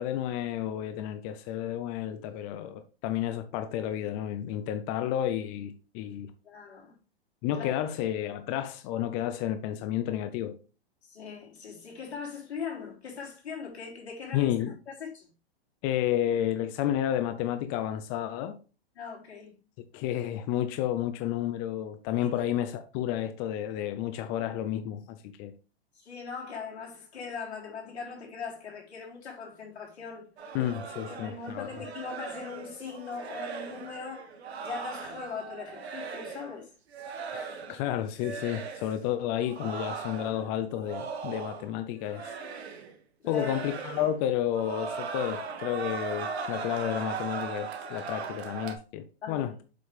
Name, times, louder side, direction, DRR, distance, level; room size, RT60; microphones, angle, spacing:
voice 1, 0.0-6.3 7.4-10.6 14.3-14.8 15.8-18.6 19.9-25.5 30.5-31.7 37.3-42.4 43.3-49.6, left 11 dB, 35° left, 0.6 m, -31 dB
voice 2, 6.4-7.0 7.5-7.7 11.0-14.5 15.0-15.3 19.0-19.6 22.2-22.3 25.9-30.3 30.9-34.3 34.6-36.7 37.1-37.2 43.2-43.6 49.2-49.5, left 5 dB, 80° left, 3.9 m, -40 dB
sound 1, 30.4-36.5 36.9-37.9 38.2-39.0 39.4-41.8 42.0-43.0 43.3-44.2 44.5-48.8, right 5 dB, 80° right, 1.6 m, -38 dB
7.7 x 5.4 x 3.4 m
hypercardioid pair, 125°, 32 cm